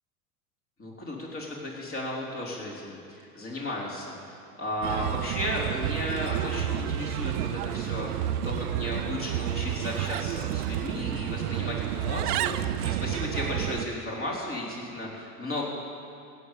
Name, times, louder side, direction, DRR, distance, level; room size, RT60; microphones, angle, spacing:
voice 1, 0.8-15.7, left 1 dB, 30° left, -3 dB, 4.1 m, -34 dB
Bird, 4.8-13.9, right 12 dB, 80° right, 0.7 m, -30 dB
16.0 x 7.6 x 8.4 m, 2.5 s
hypercardioid pair, 95°, 46 cm